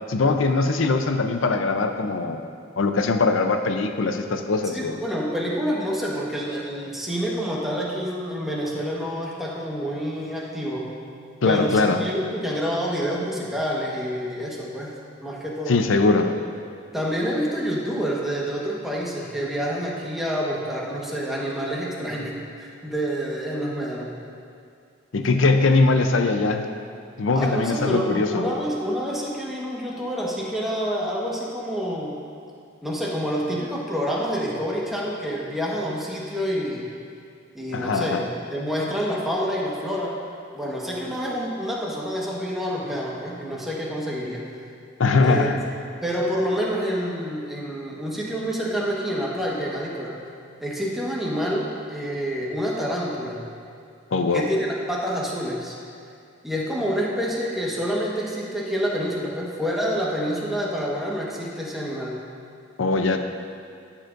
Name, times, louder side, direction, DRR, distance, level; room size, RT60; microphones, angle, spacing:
voice 1, 0.1-2.5 2.8-5.0 11.4-12.0 15.7-16.3 25.1-26.7 27.2-28.4 37.7-38.2 45.0-45.6 54.1-54.5 62.8-63.2, left 3 dB, 75° left, 6 dB, 0.6 m, -21 dB
voice 2, 4.7-10.9 11.4-14.9 15.2-15.7 16.9-24.2 27.3-32.2 32.8-36.9 37.5-40.1 40.5-44.5 45.2-45.5 46.0-50.2 50.6-53.5 54.3-55.7 56.4-62.1, equal, ahead, -5 dB, 1.3 m, -28 dB
13.5 x 7.2 x 2.6 m, 2.4 s
head